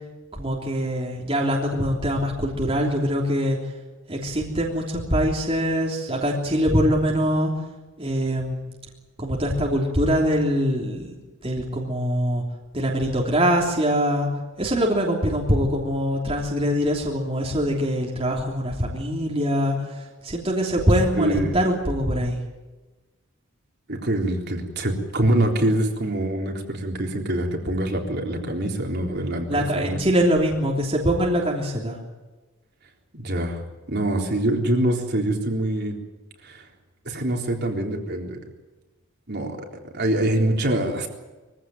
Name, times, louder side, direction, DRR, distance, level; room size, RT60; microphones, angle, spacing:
voice 1, 0.3-3.6 4.1-7.5 8.0-8.7 9.2-11.1 11.4-12.4 12.7-14.3 14.6-19.7 20.2-22.4 29.5-32.0, equal, 25° right, -2 dB, 3.3 m, -23 dB
voice 2, 21.1-21.6 23.9-30.0 33.1-33.6 33.9-36.0 36.4-36.7 37.1-38.4 39.3-39.7 39.9-41.1, right 1 dB, 50° right, 1 dB, 3.8 m, -24 dB
23.5 x 16.0 x 9.3 m, 1.2 s
head